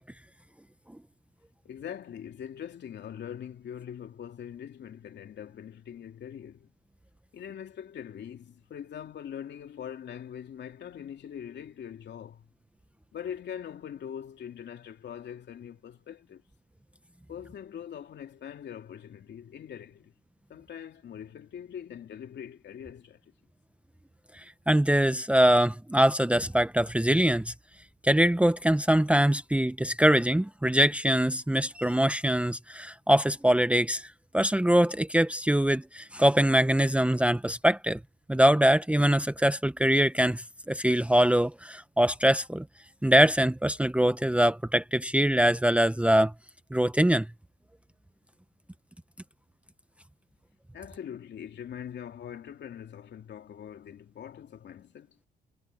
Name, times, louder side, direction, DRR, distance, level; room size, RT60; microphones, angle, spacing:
voice 1, 1.6-6.7 7.3-12.5 13.1-16.4 17.3-20.1 20.5-23.2 50.7-55.2, left 9 dB, 60° left, 3.0 m, -42 dB
voice 2, 24.7-27.5 28.0-34.1 34.3-38.0 38.3-42.6 43.0-46.3 46.7-47.3, right 1 dB, 5° right, 0.9 m, -23 dB
cardioid pair, 90°, 20 cm